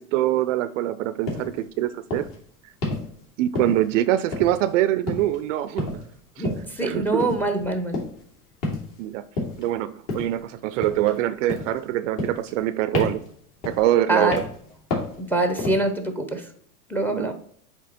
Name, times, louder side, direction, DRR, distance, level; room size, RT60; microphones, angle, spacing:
voice 1, 0.0-2.3 3.4-5.9 6.4-7.3 9.0-9.3 9.6-13.2 13.7-14.4 17.1-17.3, right 13 dB, 55° right, 0.5 m, -24 dB
sound 1, 1.3-1.5 2.1-2.4 2.8-3.1 3.6-4.0 4.3-4.7 5.1-5.4 5.8-6.1 6.4-6.7 7.2-7.5 7.9-8.2 8.6-9.0 9.4-9.7 10.1-10.4 10.8-11.2 11.5-11.8 12.2-12.7 12.9-13.3 13.6-13.9 14.3-14.6 14.9-15.2 15.6-15.9, left 2 dB, 50° left, 2.6 m, -30 dB
voice 2, 6.4-8.0 14.1-14.4 15.2-16.4 16.9-17.3, right 2 dB, 5° left, 0.7 m, -24 dB
8.1 x 3.0 x 4.2 m
hypercardioid pair, 105°, 47 cm